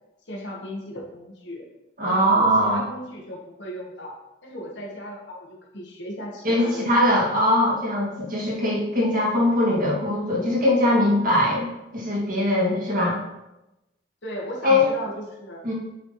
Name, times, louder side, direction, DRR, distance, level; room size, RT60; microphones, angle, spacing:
voice 1, 0.3-1.6 2.0-7.1 14.2-15.6, left 1 dB, 80° left, -1 dB, 1.4 m, -36 dB
voice 2, 2.0-2.8 6.4-11.7 11.9-13.2 14.6-14.8 15.6-15.7, left 1 dB, 50° right, -5 dB, 2.1 m, -21 dB
8.5 x 4.3 x 3.1 m, 0.97 s
head